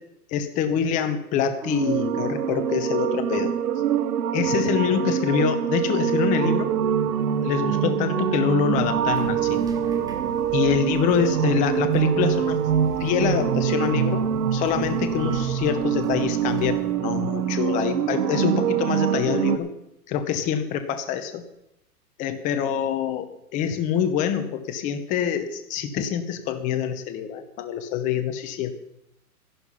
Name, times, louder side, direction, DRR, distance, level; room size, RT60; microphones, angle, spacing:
voice 1, 0.3-3.5 4.3-6.7 7.4-9.7 10.5-12.6 13.0-14.3 14.5-19.7 20.1-21.4 22.2-28.7, left 8 dB, 15° left, 9 dB, 0.8 m, -25 dB
sound 1, 1.6-19.6, right 9 dB, 70° right, 1.2 m, -24 dB
sound 2, 8.7-16.9, right 5 dB, 10° right, 1.0 m, -43 dB
13.0 x 11.5 x 5.5 m, 0.83 s
hypercardioid pair, 150°, 48 cm